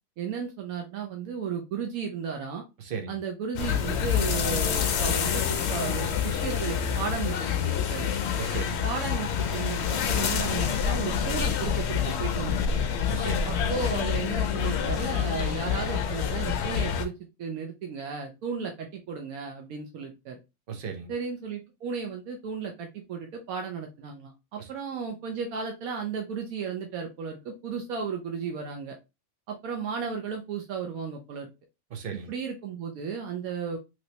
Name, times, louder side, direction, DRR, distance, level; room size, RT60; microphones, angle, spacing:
voice 1, 0.2-2.6 3.1-8.1 8.8-12.7 13.4-17.1 17.4-20.4 21.1-29.0 29.5-31.5 32.1-33.8, right 6 dB, 90° right, 1.1 m, -34 dB
voice 2, 2.8-3.2 8.4-8.8 13.1-13.6 20.7-21.1 24.6-24.7 31.9-32.3, right 6 dB, 50° right, 0.7 m, -36 dB
sound 1, 3.6-17.1, left 8 dB, 65° left, 0.7 m, -27 dB
3.1 x 3.0 x 2.7 m
omnidirectional pair, 1.5 m